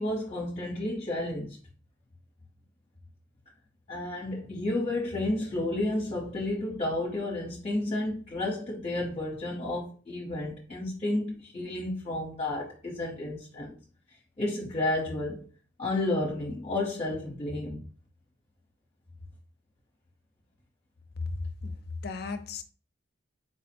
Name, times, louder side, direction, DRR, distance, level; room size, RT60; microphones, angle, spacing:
voice 1, 0.0-1.6 3.9-13.7 14.4-15.5 15.8-17.8, left 1 dB, 30° left, 0.8 m, -31 dB
voice 2, 21.2-21.7 22.0-22.6, left 3 dB, 50° left, 0.5 m, -35 dB
4.5 x 2.0 x 4.3 m
head